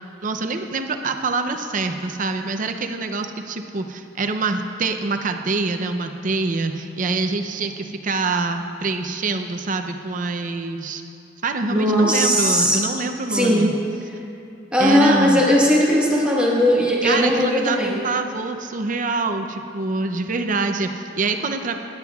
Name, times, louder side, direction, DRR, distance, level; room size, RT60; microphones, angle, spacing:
voice 1, 0.2-11.0 11.4-13.7 14.8-15.4 17.0-21.7, right 3 dB, 45° right, 6 dB, 0.6 m, -25 dB
voice 2, 11.7-12.8 13.3-13.7 14.7-18.0, equal, 5° right, -5 dB, 1.4 m, -18 dB
16.5 x 10.5 x 2.4 m, 2.7 s
head